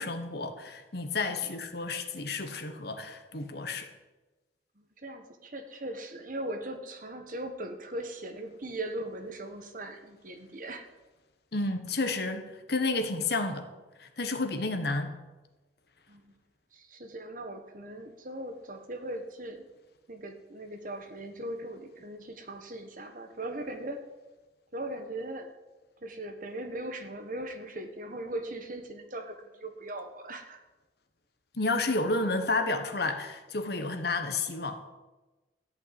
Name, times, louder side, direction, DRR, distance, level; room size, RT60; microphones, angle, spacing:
voice 1, 0.0-3.9 11.5-13.7 14.0-15.1 31.5-34.8, left 3 dB, 55° left, 7 dB, 1.3 m, -31 dB
voice 2, 4.8-10.9 16.1-16.3 16.7-19.6 20.1-24.1 24.7-25.5 26.0-30.6, right 1 dB, 45° right, 6 dB, 1.4 m, -39 dB
14.0 x 5.7 x 9.4 m, 1.2 s
head